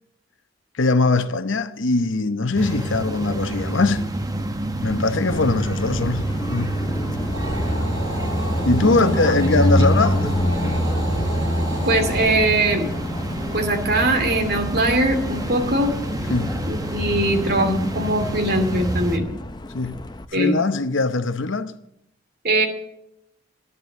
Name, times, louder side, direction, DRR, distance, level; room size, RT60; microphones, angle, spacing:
voice 1, 0.8-4.1 4.8-6.7 8.6-10.4 10.6-10.8 16.3-16.6 19.7-20.0 20.3-21.7, left 3 dB, 70° left, 0.8 m, -21 dB
sound 1, 2.5-19.2, right 1 dB, 20° right, 0.9 m, -29 dB
Car passing by, 5.3-20.3, left 1 dB, 20° left, 0.6 m, -27 dB
sound 2, 7.3-12.4, equal, 75° right, 5.6 m, -33 dB
voice 2, 8.8-9.4 11.9-12.9 13.5-15.9 16.7-19.3 20.3-20.6 22.4-22.7, right 1 dB, 50° right, 2.4 m, -21 dB
11.0 x 11.0 x 7.3 m
head